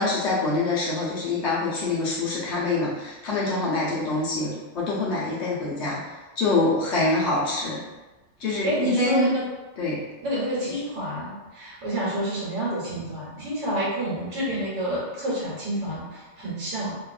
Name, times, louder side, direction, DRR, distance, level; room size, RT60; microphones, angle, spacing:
voice 1, 0.0-6.0 6.4-7.8 8.4-9.3 9.8-10.1 10.6-10.8, left 2 dB, 45° left, -8 dB, 1.0 m, -25 dB
voice 2, 8.6-9.5 10.2-17.0, equal, 65° right, -8 dB, 1.4 m, -28 dB
3.2 x 2.6 x 2.5 m, 1.2 s
omnidirectional pair, 2.0 m